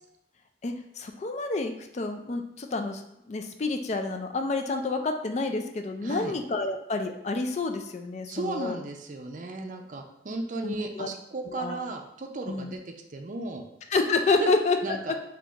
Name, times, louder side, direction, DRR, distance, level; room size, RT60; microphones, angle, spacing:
voice 1, 0.6-3.0 3.3-8.8 10.6-11.1 11.6-11.8 12.5-12.7 13.9-15.0, left 3 dB, 40° left, 6 dB, 0.3 m, -29 dB
voice 2, 6.0-6.3 8.3-12.8 13.1-13.6 14.4-14.5 14.8-15.1, right 2 dB, 45° right, 3 dB, 0.5 m, -35 dB
3.5 x 2.8 x 3.9 m, 0.83 s
head